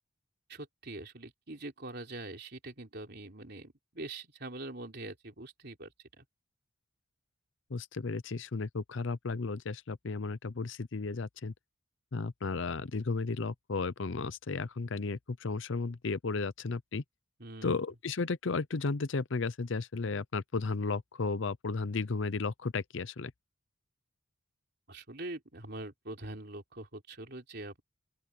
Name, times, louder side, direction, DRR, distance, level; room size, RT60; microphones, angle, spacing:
voice 1, 0.5-5.9 6.2-6.3 17.4-17.8 24.9-27.8, right 2 dB, 50° right, 3.7 m, -43 dB
voice 2, 7.7-11.5 12.1-17.0 17.6-23.3, left 4 dB, 60° left, 0.6 m, -34 dB
open air
head